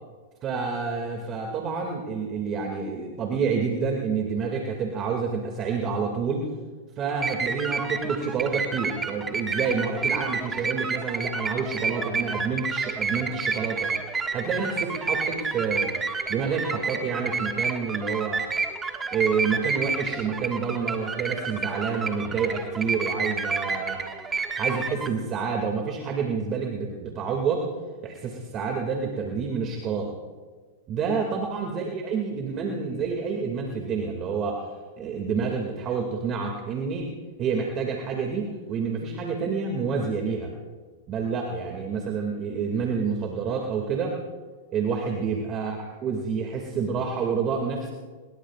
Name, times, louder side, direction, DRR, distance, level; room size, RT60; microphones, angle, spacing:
voice 1, 0.4-6.5 7.0-13.9 14.3-15.9 16.3-18.5 19.1-24.0 24.6-27.7 28.0-30.2 30.9-34.7 35.0-37.1 37.4-40.5 41.1-44.2 44.7-47.9, right 5 dB, 35° right, 1 dB, 2.4 m, -28 dB
sound 1, 7.0-25.1, right 4 dB, 15° right, 1.8 m, -30 dB
24.5 x 22.0 x 2.5 m, 1.5 s
hypercardioid pair, 120°, 0 cm